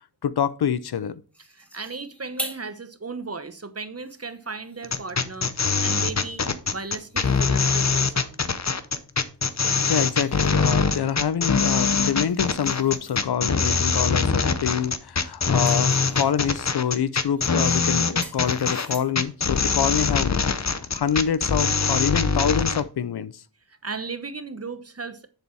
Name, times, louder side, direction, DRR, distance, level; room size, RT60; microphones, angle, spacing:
voice 1, 0.2-1.2 9.9-23.4, left 8 dB, 70° left, 0.6 m, -26 dB
sound 1, 1.3-2.8 3.3-3.4 3.9-5.2 6.6-7.9 9.4-10.7 11.9-13.2 14.6-14.9 15.2-16.6 17.4-19.3, right 1 dB, 5° left, 2.1 m, -43 dB
voice 2, 1.5-5.5 5.8-6.4 6.7-8.4 23.7-25.3, right 4 dB, 35° right, 1.1 m, -35 dB
sound 2, 4.8-22.8, left 5 dB, 40° left, 0.8 m, -23 dB
10.5 x 4.1 x 4.6 m
cardioid pair, 40°, 40 cm